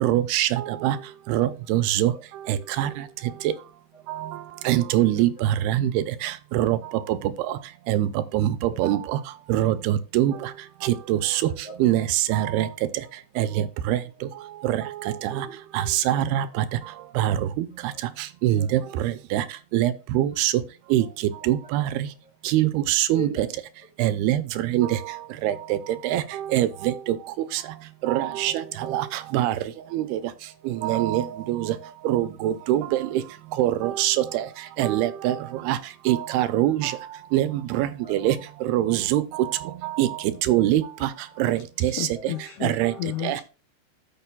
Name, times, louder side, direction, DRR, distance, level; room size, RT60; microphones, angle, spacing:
voice 1, 0.0-1.0 1.3-2.1 2.8-2.9 4.7-5.3 5.7-5.9 6.2-6.8 7.9-8.1 8.3-8.5 8.8-9.0 9.5-10.3 11.1-11.3 11.8-12.7 13.4-13.5 13.9-14.0 16.1-16.4 17.2-17.4 18.4-18.8 19.3-19.4 19.7-20.5 20.9-21.0 21.5-21.8 22.5-23.3 24.0-24.4 24.7-24.9 25.4-25.5 26.0-26.2 26.5-26.7 28.1-28.5 28.9-29.0 29.3-29.5 29.9-30.0 30.8-31.2 31.5-31.6 32.1-32.8 33.6-34.4 34.8-35.3 35.7-35.8 36.1-36.9 37.3-37.5 37.8-38.4 38.7-39.2 40.0-40.1 40.5-40.8 41.4-41.6 42.0-42.1 42.6-42.9 43.2-43.4, right 13 dB, 85° right, 2.4 m, -22 dB
voice 2, 3.9-4.4 4.7-5.4 7.3-7.4 8.7-8.8 10.3-10.4 11.6-11.8 14.2-14.3 15.0-15.6 16.5-16.6 17.9-18.2 18.6-18.7 21.6-21.9 22.2-22.3 23.1-23.5 23.8-24.1 24.6-24.9 26.1-26.2 28.4-28.9 30.0-30.2 30.7-31.0 31.3-31.4 34.2-34.7 38.0-38.2 40.5-40.8 42.1-42.2, equal, 5° right, 1.7 m, -43 dB
voice 3, 41.8-43.4, left 13 dB, 80° left, 2.8 m, -33 dB
14.0 x 6.7 x 2.3 m
omnidirectional pair, 4.8 m